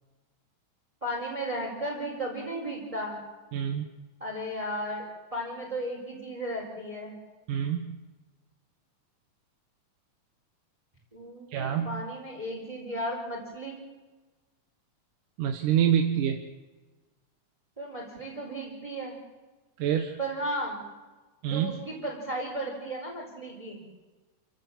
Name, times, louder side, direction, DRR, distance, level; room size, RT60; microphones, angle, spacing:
voice 1, 1.0-3.2 4.2-7.2 11.1-13.8 17.8-19.2 20.2-20.8 21.4-23.8, right 1 dB, 10° right, -2 dB, 4.4 m, -35 dB
voice 2, 3.5-3.9 7.5-8.0 11.5-12.0 15.4-16.4 19.8-20.2 21.4-21.8, right 9 dB, 85° right, 4 dB, 2.9 m, -26 dB
28.5 x 16.5 x 7.3 m, 1.3 s
omnidirectional pair, 3.6 m